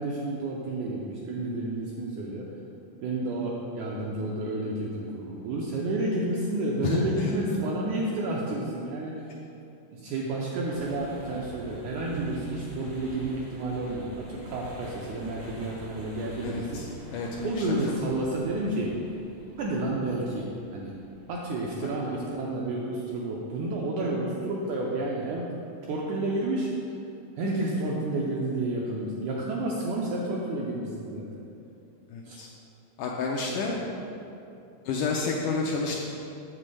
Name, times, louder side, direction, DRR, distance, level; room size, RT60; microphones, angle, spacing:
voice 1, 0.0-2.5 3.0-9.3 9.9-16.9 17.4-19.0 19.6-20.9 21.3-25.5 25.8-26.7 27.4-31.3 32.3-32.4 33.5-33.7, right 2 dB, 85° right, -3 dB, 1.8 m, -30 dB
sound 1, 10.7-22.8, equal, 55° right, 0.7 m, -46 dB
voice 2, 16.4-16.9 17.1-17.7 21.8-21.9 32.1-32.5 33.0-33.8 34.9-36.0, left 4 dB, 85° left, -1 dB, 1.9 m, -30 dB
7.5 x 7.3 x 3.3 m, 2.7 s
omnidirectional pair, 4.1 m